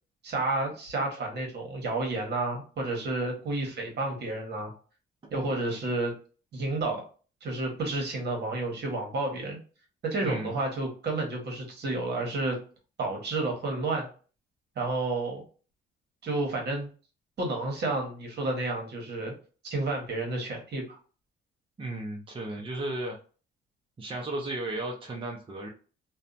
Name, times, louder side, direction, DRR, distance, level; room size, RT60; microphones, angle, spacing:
voice 1, 0.2-4.7 5.3-6.1 6.5-7.0 7.4-9.6 10.0-12.6 13.0-14.1 14.8-15.4 16.2-16.9 17.4-19.3 19.6-21.0, right 2 dB, 55° right, 1 dB, 1.2 m, -30 dB
voice 2, 10.2-10.5 21.8-23.2 24.0-25.7, right 2 dB, 25° right, 0 dB, 0.6 m, -34 dB
2.6 x 2.2 x 2.5 m, 0.38 s
cardioid pair, 90°, 20 cm